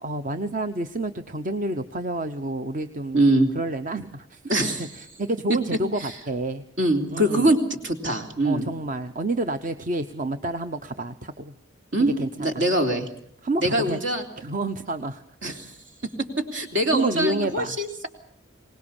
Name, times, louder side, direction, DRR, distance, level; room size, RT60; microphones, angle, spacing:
voice 1, 0.0-3.2 3.5-4.4 4.8-6.6 7.1-7.5 8.4-11.5 12.2-12.6 13.4-14.0 14.4-15.5 16.9-17.8, right 2 dB, 40° right, 9 dB, 0.9 m, -29 dB
voice 2, 3.1-3.5 4.5-4.9 5.5-5.6 6.0-6.1 6.8-8.7 11.9-13.1 13.6-14.2 15.4-15.7 16.5-18.1, right 1 dB, 65° right, 5 dB, 3.4 m, -23 dB
23.5 x 20.0 x 7.1 m, 0.66 s
head